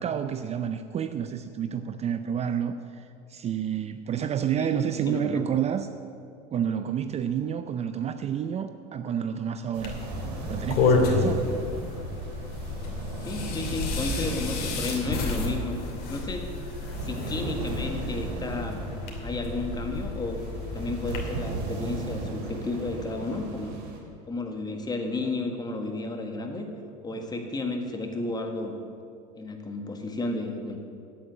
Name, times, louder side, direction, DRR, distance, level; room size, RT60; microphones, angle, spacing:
voice 1, 0.0-5.9 6.5-10.0 10.5-11.4, right 8 dB, 35° right, 10 dB, 0.5 m, -29 dB
voice 2, 4.6-5.4 13.2-16.5 17.0-18.8 19.2-20.4 20.7-23.7 24.3-26.7 27.0-28.8 29.4-30.8, left 2 dB, 20° left, 4 dB, 1.6 m, -32 dB
sound 1, 9.7-24.0, right 2 dB, 80° right, 2.6 m, -37 dB
sound 2, 9.8-21.2, left 3 dB, 50° left, 2.7 m, -30 dB
8.8 x 8.5 x 9.1 m, 2.5 s
supercardioid pair, 105°, 20 cm